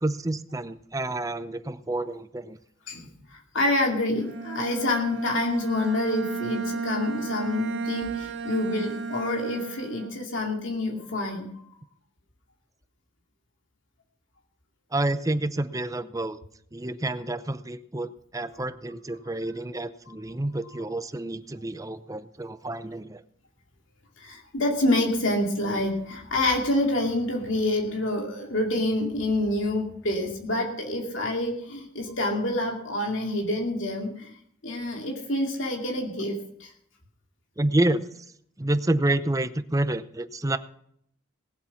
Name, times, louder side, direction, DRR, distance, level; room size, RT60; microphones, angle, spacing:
voice 1, 0.0-2.6 14.9-16.4 16.7-23.2 37.6-38.0 38.6-40.6, right 1 dB, 15° right, 12 dB, 0.7 m, -28 dB
voice 2, 2.9-11.5 24.2-34.3 34.6-36.7, left 1 dB, 70° left, 0 dB, 2.5 m, -27 dB
Bowed string instrument, 4.2-10.3, right 4 dB, 60° right, 2.1 m, -33 dB
19.0 x 8.1 x 5.9 m, 0.68 s
head